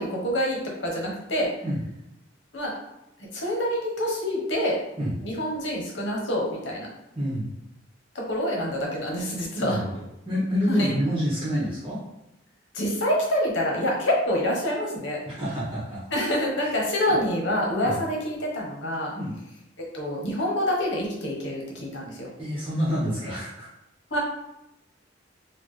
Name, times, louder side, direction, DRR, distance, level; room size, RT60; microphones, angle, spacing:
voice 1, 0.0-1.5 2.5-2.7 3.3-4.8 5.2-6.9 8.1-9.8 10.7-10.9 12.7-15.2 16.1-19.1 19.9-22.3 24.1-24.2, equal, 70° left, -2 dB, 1.1 m, -26 dB
voice 2, 7.1-7.5 9.6-12.0 15.3-16.0 16.6-16.7 17.1-17.2 17.8-18.0 19.1-19.4 22.4-23.7, equal, 30° right, -8 dB, 1.0 m, -28 dB
4.2 x 2.3 x 3.2 m, 0.84 s
head